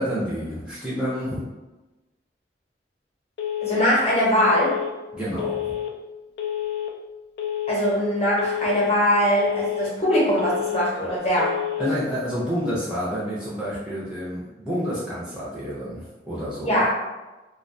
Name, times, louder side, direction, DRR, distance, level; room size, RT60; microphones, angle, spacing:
voice 1, 0.0-1.4 5.1-5.7 11.8-16.8, equal, 5° right, -9 dB, 0.4 m, -29 dB
Telephone, 3.4-3.9 4.4-4.9 5.4-5.9 6.4-6.9 7.4-7.9 8.4-8.9 9.4-9.9 10.4-10.9 11.4-11.9, left 11 dB, 75° left, 0.3 m, -28 dB
voice 2, 3.6-4.7 7.7-11.5 16.6-16.9, equal, 35° left, -6 dB, 0.8 m, -21 dB
2.3 x 2.2 x 2.5 m, 1.1 s
head